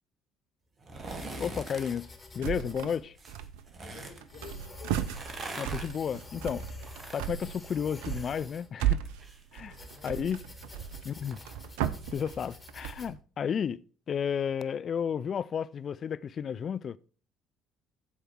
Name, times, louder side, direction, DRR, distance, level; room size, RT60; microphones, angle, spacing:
sound 1, 0.8-2.0 3.1-4.2 5.0-8.4 8.7-12.1 12.5-12.6, right 2 dB, 35° right, 1.9 m, -44 dB
sound 2, 1.1-13.1, left 2 dB, 15° left, 3.5 m, -49 dB
voice 1, 1.4-2.1 2.3-3.1 5.5-6.6 7.1-9.0 9.5-9.8 10.0-10.4 11.1-11.5 12.1-13.8 14.1-17.0, left 7 dB, 40° left, 0.4 m, -32 dB
sound 3, 2.4-3.0 3.3-3.9 4.2-13.2, right 11 dB, 65° right, 0.6 m, -35 dB
voice 2, 3.8-5.0 9.7-10.3 10.7-11.0, left 5 dB, 70° left, 4.3 m, -51 dB
14.5 x 5.0 x 4.4 m
figure-of-eight pair, 55°, 0 cm